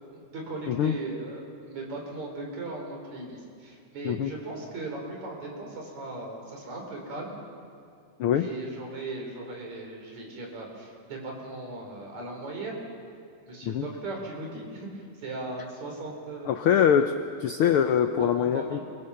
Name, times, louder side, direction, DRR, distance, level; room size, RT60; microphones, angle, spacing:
voice 1, 0.1-7.4 8.4-12.8 13.5-16.6 18.0-18.8, right 2 dB, 70° right, 0 dB, 5.4 m, -38 dB
voice 2, 16.5-18.8, left 8 dB, 85° left, 8 dB, 1.2 m, -23 dB
28.5 x 22.5 x 5.8 m, 2.4 s
omnidirectional pair, 3.4 m